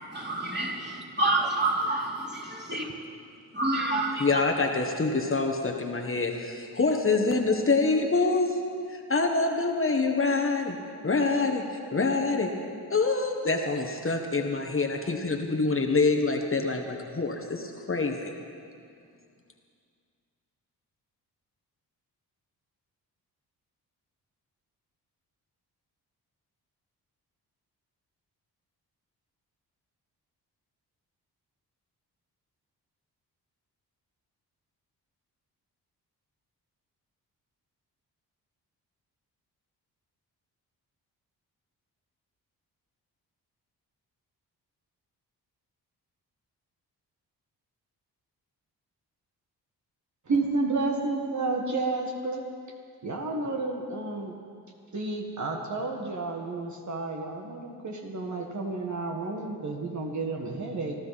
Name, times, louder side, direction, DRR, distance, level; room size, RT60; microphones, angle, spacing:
voice 1, 0.0-2.9 3.5-4.3, right 2 dB, 25° right, -2 dB, 3.4 m, -28 dB
voice 2, 4.2-8.6 8.9-10.8 11.0-12.6 12.9-18.3, left 3 dB, 30° left, 2 dB, 1.6 m, -26 dB
voice 3, 50.3-52.4 53.0-54.3 54.9-61.0, right 3 dB, 45° right, 1 dB, 1.8 m, -31 dB
24.5 x 12.0 x 4.2 m, 2.3 s
supercardioid pair, 55°, 39 cm